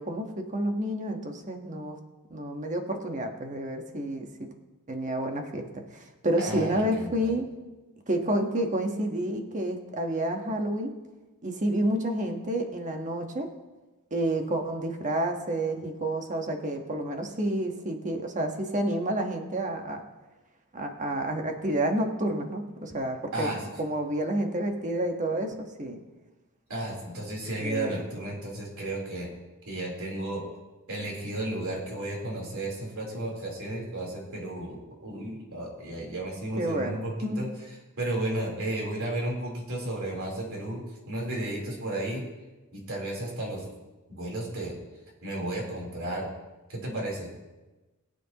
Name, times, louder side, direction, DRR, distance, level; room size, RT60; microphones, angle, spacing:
voice 1, 0.0-2.0 2.3-4.5 4.9-7.5 8.1-10.9 11.4-13.5 14.1-20.0 20.7-26.0 27.6-28.0 36.6-37.5, right 1 dB, 35° right, 3 dB, 1.3 m, -29 dB
voice 2, 6.4-7.3 23.3-23.6 26.7-29.3 29.6-30.4 30.9-42.2 42.7-43.7 44.1-44.8 45.2-46.3 46.7-47.3, right 1 dB, 65° right, -3 dB, 3.7 m, -33 dB
22.0 x 8.1 x 3.0 m, 1.1 s
head